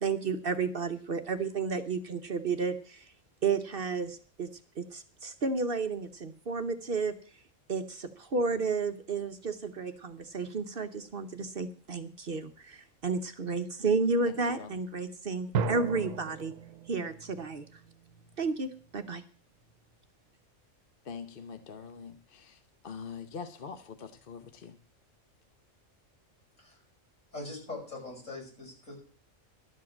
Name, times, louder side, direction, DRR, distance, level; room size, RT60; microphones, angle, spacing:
voice 1, 0.0-3.1 3.4-4.5 4.8-7.1 7.7-16.5 16.9-17.6 18.4-19.2, right 4 dB, 50° right, 8 dB, 1.0 m, -32 dB
sound 1, 15.5-19.0, right 5 dB, 85° right, 1.1 m, -36 dB
voice 2, 21.0-24.8, left 6 dB, 45° left, 9 dB, 1.0 m, -44 dB
voice 3, 27.3-28.9, left 2 dB, 75° left, -2 dB, 6.0 m, -42 dB
12.0 x 7.5 x 7.2 m, 0.41 s
omnidirectional pair, 1.4 m